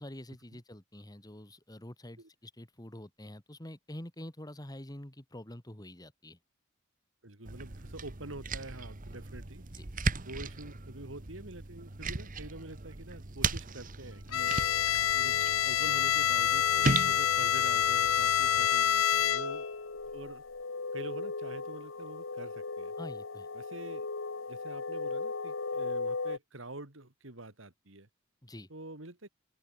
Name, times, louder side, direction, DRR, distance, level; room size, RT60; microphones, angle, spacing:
voice 1, 0.0-6.4 9.7-9.9 19.1-19.2 23.0-23.5 28.4-28.7, left 1 dB, 20° left, 2.2 m, -46 dB
voice 2, 7.2-9.6 10.2-14.5 15.1-19.7 20.1-20.4 20.9-22.9 23.5-24.1 24.5-28.1 28.7-29.3, right 2 dB, 65° right, 3.0 m, -46 dB
sound 1, 7.5-18.7, right 3 dB, 40° right, 1.3 m, -37 dB
Bowed string instrument, 14.3-19.7, left 10 dB, 85° left, 0.8 m, -27 dB
sound 2, 14.4-26.4, left 3 dB, 70° left, 1.2 m, -39 dB
open air
head